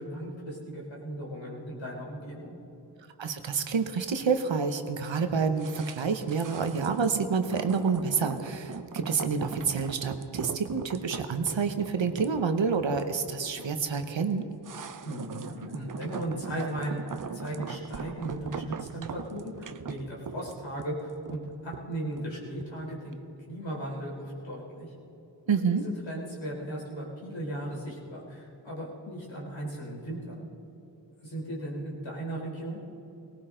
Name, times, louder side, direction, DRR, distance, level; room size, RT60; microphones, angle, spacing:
voice 1, 0.0-2.5 15.0-17.0 17.3-23.2 23.5-24.9 25.4-30.4 31.2-32.8, right 1 dB, 85° left, -4 dB, 4.0 m, -37 dB
voice 2, 3.2-14.5 25.5-25.8, right 5 dB, 90° right, 7 dB, 1.0 m, -28 dB
sound 1, 5.6-22.8 23.1-23.2, right 6 dB, 45° right, 0.6 m, -40 dB
18.5 x 18.5 x 3.8 m, 2.9 s
cardioid pair, 45°, 44 cm